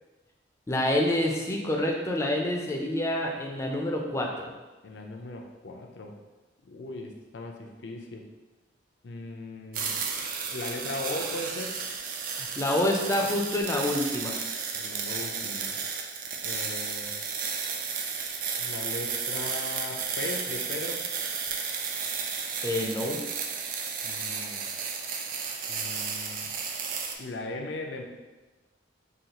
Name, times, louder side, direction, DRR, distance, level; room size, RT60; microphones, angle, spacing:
voice 1, 0.7-4.5 12.3-14.4 22.6-23.2, left 1 dB, 15° left, 0 dB, 0.4 m, -27 dB
voice 2, 4.8-6.2 6.6-8.3 9.0-9.9 10.5-11.8 14.7-15.8 16.4-17.1 18.6-21.0 24.0-24.6 25.7-26.5 27.2-28.0, left 2 dB, 75° left, 2 dB, 0.5 m, -38 dB
sound 1, 9.7-27.1, right 5 dB, 45° right, 0.3 m, -33 dB
5.0 x 2.4 x 2.9 m, 1.2 s
head